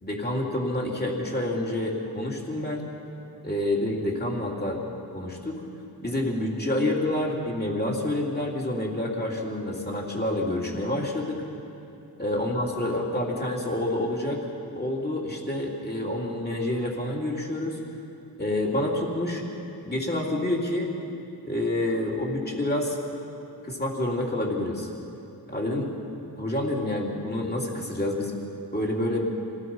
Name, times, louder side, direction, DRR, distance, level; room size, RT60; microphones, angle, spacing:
voice 1, 0.0-2.8 3.4-4.8 5.1-5.6 6.0-11.4 12.2-14.5 14.8-17.8 18.4-19.4 19.9-20.9 21.4-23.0 23.6-24.9 25.5-25.9 26.4-28.4 28.7-29.2, left 1 dB, 25° left, -2 dB, 3.5 m, -28 dB
27.0 x 18.0 x 5.6 m, 2.8 s
wide cardioid pair, 60°, 38 cm